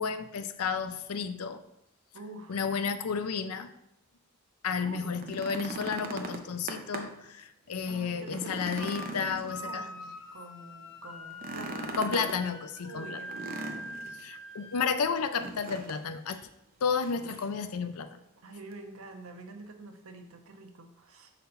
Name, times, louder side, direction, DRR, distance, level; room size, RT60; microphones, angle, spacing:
voice 1, 0.0-1.6 2.5-3.7 4.6-9.9 12.0-13.2 14.2-16.4 16.8-18.2, left 5 dB, 85° left, 10 dB, 0.5 m, -32 dB
voice 2, 2.1-2.7 4.8-5.2 7.9-12.0 12.8-13.9 18.4-21.3, right 2 dB, 75° right, 5 dB, 0.7 m, -47 dB
sound 1, 5.0-7.3 7.7-7.8 8.2-10.1 11.3-12.4 13.3-14.2 15.4-16.0 16.3-16.4 17.0-17.6 18.7-18.8, right 2 dB, 40° right, 0.6 m, -40 dB
sound 2, 8.8-9.1 9.5-15.5, left 1 dB, 60° left, 0.9 m, -44 dB
4.3 x 4.1 x 5.5 m, 0.82 s
head